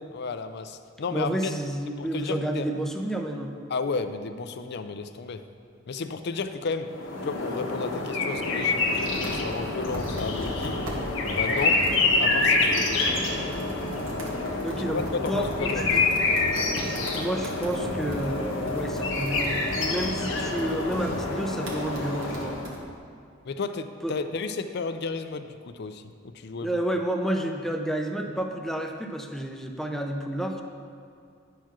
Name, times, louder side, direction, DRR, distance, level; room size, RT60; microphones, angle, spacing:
voice 1, 0.1-1.5 2.0-2.7 3.7-5.4 5.9-6.9 7.2-10.8 11.3-11.8 12.2-13.2 14.9-15.9 23.4-26.0 26.3-26.8, left 4 dB, 55° left, 9 dB, 0.5 m, -33 dB
voice 2, 1.1-3.5 14.6-16.1 17.2-22.6 24.0-24.1 26.6-30.6, right 1 dB, ahead, 3 dB, 0.6 m, -30 dB
sound 1, 6.9-22.8, left 3 dB, 80° left, 1.3 m, -27 dB
Computer keyboard, 8.2-22.8, right 1 dB, 85° right, 1.6 m, -39 dB
10.0 x 4.6 x 6.0 m, 2.4 s
head